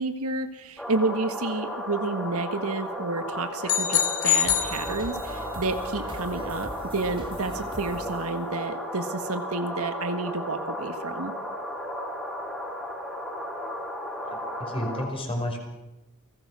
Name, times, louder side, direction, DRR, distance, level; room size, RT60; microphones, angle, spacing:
voice 1, 0.0-11.3, right 3 dB, 75° right, 8 dB, 1.7 m, -30 dB
sound 1, 0.8-15.1, equal, 5° left, 5.4 m, -34 dB
sound 2, 3.7-5.5, left 10 dB, 75° left, 3.2 m, -25 dB
sound 3, 4.4-9.1, right 1 dB, 25° right, 2.4 m, -41 dB
voice 2, 14.2-15.6, equal, 25° left, 2 dB, 5.0 m, -31 dB
29.0 x 19.5 x 6.3 m, 0.96 s
head